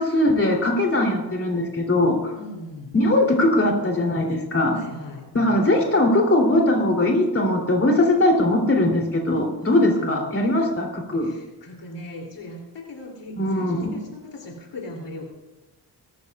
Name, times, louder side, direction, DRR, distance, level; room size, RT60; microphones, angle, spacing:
voice 1, 0.0-2.3 2.9-4.8 5.3-11.3 13.4-13.9, left 1 dB, 30° left, 0 dB, 3.1 m, -20 dB
voice 2, 2.3-2.9 4.7-5.6 9.6-10.3 11.2-15.3, left 1 dB, 80° left, 0 dB, 3.1 m, -38 dB
20.5 x 13.5 x 2.4 m, 1.1 s
wide cardioid pair, 100°, 43 cm